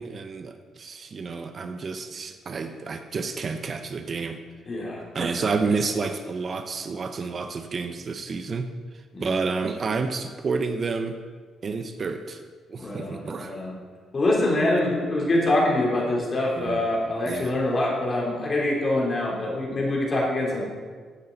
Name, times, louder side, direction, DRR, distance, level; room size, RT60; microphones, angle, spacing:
voice 1, 0.0-4.4 5.1-8.7 9.2-11.2 11.6-12.4 12.7-13.5 16.6-16.8 17.3-17.5, right 4 dB, 45° right, 8 dB, 0.7 m, -29 dB
voice 2, 4.6-5.4 9.1-9.4 12.8-13.7 14.1-20.6, left 1 dB, 35° left, -2 dB, 3.4 m, -25 dB
14.5 x 7.9 x 4.1 m, 1.5 s
cardioid pair, 90°, 0 cm